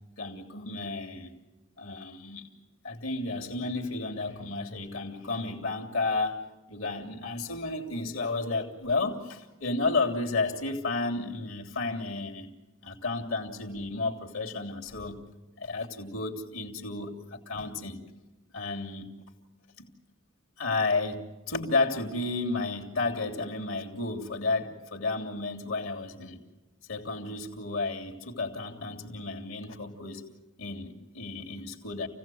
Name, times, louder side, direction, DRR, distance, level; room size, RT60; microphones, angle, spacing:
voice 1, 0.2-1.3 1.8-2.5 2.8-12.5 12.8-15.2 15.6-18.0 18.5-19.1 19.8-19.9 20.6-26.4 26.9-30.3 30.6-32.1, left 3 dB, 80° left, 1 dB, 3.1 m, -32 dB
28.5 x 17.0 x 7.8 m, 1.1 s
head